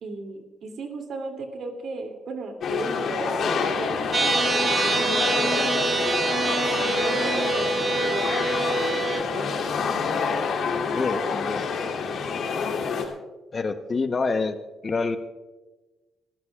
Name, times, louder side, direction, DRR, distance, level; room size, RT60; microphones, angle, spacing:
voice 1, 0.0-5.8 6.8-9.6, right 3 dB, 65° right, 4 dB, 2.8 m, -36 dB
sound 1, 2.6-13.0, left 5 dB, 65° left, 2.9 m, -27 dB
sound 2, 4.1-9.2, right 4 dB, 35° right, 0.5 m, -25 dB
voice 2, 10.7-11.7 13.5-14.6 14.8-15.2, left 4 dB, 35° left, 9 dB, 1.0 m, -27 dB
26.0 x 14.5 x 2.4 m, 1.2 s
cardioid pair, 90°, 0 cm